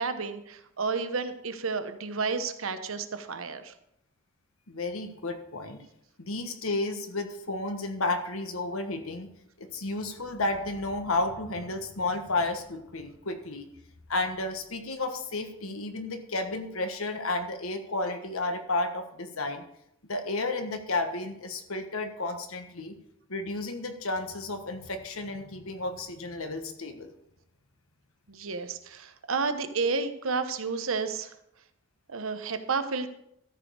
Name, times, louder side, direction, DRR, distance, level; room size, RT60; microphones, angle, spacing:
voice 1, 0.0-3.7 28.3-31.3 32.1-33.1, right 4 dB, 75° right, 10 dB, 1.0 m, -31 dB
voice 2, 4.7-5.8 6.2-9.3 9.6-13.7 14.1-19.6 20.1-22.9 23.3-27.1, left 2 dB, 80° left, 6 dB, 1.4 m, -32 dB
13.5 x 5.3 x 6.4 m, 0.77 s
head